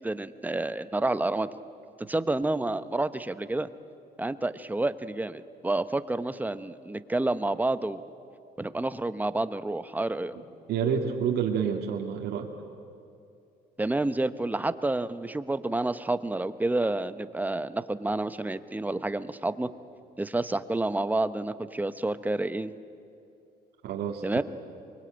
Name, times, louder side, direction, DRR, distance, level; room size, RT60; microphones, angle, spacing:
voice 1, 0.0-1.5 2.1-3.7 4.2-8.0 8.6-10.3 13.8-19.7 20.2-22.7 24.2-24.4, right 2 dB, 10° right, 12 dB, 0.8 m, -29 dB
voice 2, 10.7-12.5 23.8-24.4, right 7 dB, 70° right, 1 dB, 2.1 m, -28 dB
23.0 x 22.0 x 9.0 m, 2.6 s
cardioid pair, 110°, 17 cm